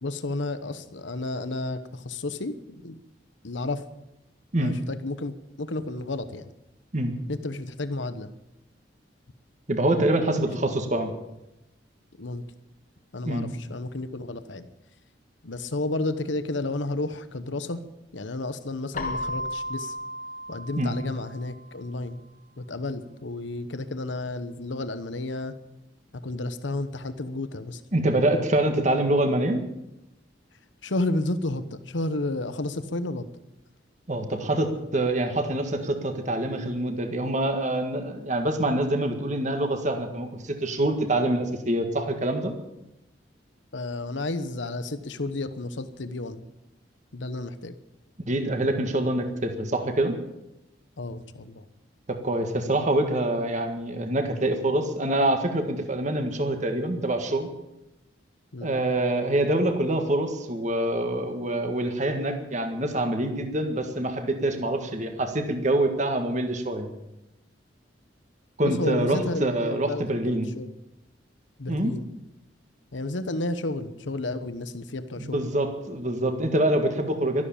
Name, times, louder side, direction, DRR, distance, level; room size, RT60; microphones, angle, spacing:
voice 1, 0.0-3.0 3.4-3.8 4.6-6.5 7.3-8.3 10.3-10.5 12.2-12.4 13.1-14.7 15.4-17.8 18.1-19.9 20.5-22.2 22.6-25.5 26.1-27.8 30.8-33.3 43.7-46.4 47.1-47.8 51.0-51.6 58.5-58.7 68.6-70.7 71.6-72.1 72.9-75.5, left 2 dB, 85° left, 11 dB, 1.1 m, -32 dB
voice 2, 9.7-11.1 13.2-13.5 20.8-20.9 27.9-29.6 34.1-42.5 48.3-50.2 52.1-57.5 58.6-66.9 68.6-70.5 71.7-71.9 75.2-77.5, right 1 dB, 40° right, 6 dB, 1.8 m, -25 dB
Keyboard (musical), 18.9-21.7, left 1 dB, 45° left, 1.7 m, -34 dB
13.0 x 12.0 x 8.7 m, 0.92 s
head